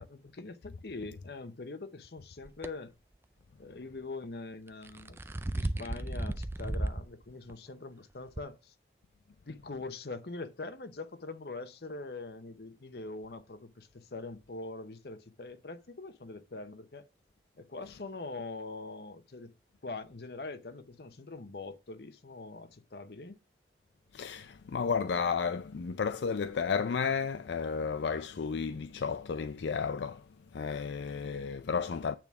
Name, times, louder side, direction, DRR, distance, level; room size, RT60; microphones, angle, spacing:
voice 1, 0.0-2.9 3.6-5.2 5.5-8.7 9.5-17.0 17.6-19.5 19.8-23.4, left 3 dB, 65° left, 0.8 m, -43 dB
sound 1, 2.4-2.7 4.7-7.1 7.5-7.6 8.4-8.5, right 1 dB, 15° right, 0.3 m, -34 dB
voice 2, 24.1-30.2 30.5-32.1, left 5 dB, 85° left, 0.4 m, -32 dB
8.8 x 3.5 x 5.8 m
head